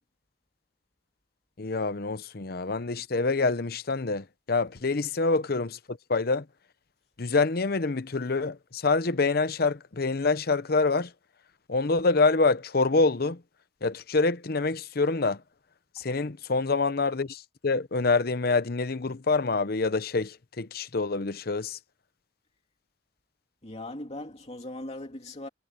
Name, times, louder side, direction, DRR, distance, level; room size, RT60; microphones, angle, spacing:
voice 1, 1.6-6.4 7.2-11.1 11.7-13.4 13.8-15.4 16.0-21.8, left 3 dB, 60° left, 0.8 m, -26 dB
voice 2, 23.6-25.5, left 1 dB, 35° left, 2.7 m, -39 dB
head